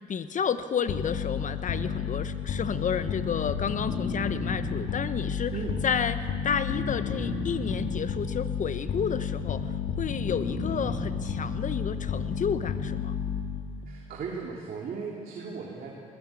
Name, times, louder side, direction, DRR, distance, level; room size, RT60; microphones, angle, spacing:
voice 1, 0.1-5.5 5.8-6.2 6.4-9.6 10.0-13.2, left 7 dB, 45° left, 12 dB, 1.2 m, -31 dB
sound 1, 0.9-13.8, left 6 dB, 65° left, 2.0 m, -31 dB
voice 2, 5.5-5.8 13.9-15.9, right 5 dB, 55° right, -1 dB, 2.8 m, -36 dB
21.0 x 18.5 x 8.6 m, 2.4 s
hypercardioid pair, 60°, 17 cm